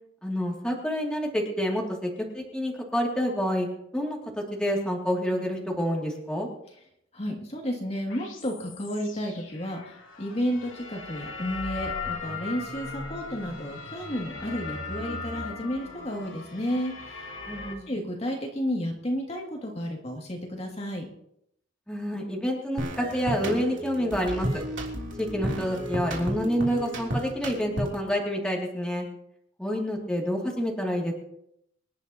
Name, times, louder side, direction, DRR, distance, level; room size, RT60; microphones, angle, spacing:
voice 1, 0.2-3.7 3.9-6.5 17.5-17.9 21.9-24.5 25.2-29.1 29.6-31.1, equal, 5° left, -1 dB, 2.6 m, -28 dB
voice 2, 7.1-17.4 17.9-21.0, equal, 35° left, 0 dB, 2.5 m, -32 dB
sound 1, 8.1-17.8, left 4 dB, 70° left, 2.7 m, -38 dB
sound 2, 22.8-28.1, right 1 dB, 65° right, 3.3 m, -33 dB
26.0 x 11.0 x 3.0 m, 0.75 s
head